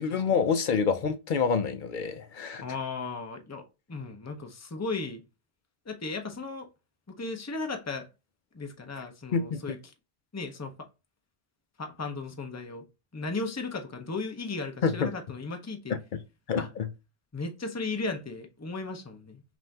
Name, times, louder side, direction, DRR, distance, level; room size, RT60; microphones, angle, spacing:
voice 1, 0.0-2.6 9.3-9.6 14.8-15.1 15.9-16.2 16.5-16.9, left 6 dB, 55° left, 0.7 m, -27 dB
voice 2, 2.6-5.2 5.9-6.7 7.1-8.1 8.5-9.9 10.3-10.9 11.8-12.9 13.1-16.0 16.6-16.7 17.3-19.4, left 3 dB, 20° left, 0.6 m, -36 dB
5.4 x 2.6 x 2.7 m
omnidirectional pair, 1.1 m